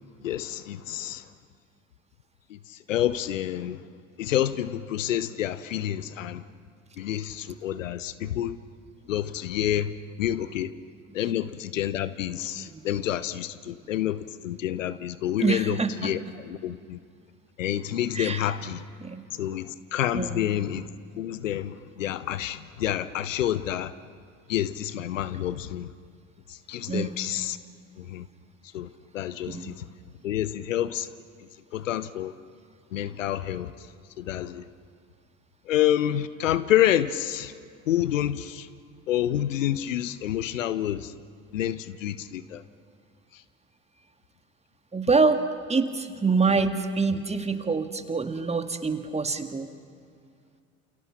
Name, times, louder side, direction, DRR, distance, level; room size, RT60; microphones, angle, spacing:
voice 1, 0.2-1.3 2.5-3.9 4.2-6.4 7.0-8.6 9.1-9.9 10.2-10.7 11.1-17.0 17.6-18.8 19.3-20.9 21.2-23.9 24.5-25.9 26.5-27.6 28.0-28.3 28.7-29.9 30.2-31.1 31.7-32.3 32.9-33.9 34.2-34.6 35.7-37.5 37.9-38.7 39.1-41.1 41.5-42.6 43.3-43.4, left 12 dB, 75° left, 16 dB, 0.8 m, -28 dB
voice 2, 12.5-12.9 15.4-16.2 18.1-18.5 19.0-19.2 20.1-20.5 26.9-27.3 29.5-29.7 44.9-45.4 45.7-49.7, right 4 dB, 15° right, 8 dB, 1.8 m, -26 dB
29.0 x 28.0 x 5.9 m, 2.3 s
figure-of-eight pair, 65°, 38 cm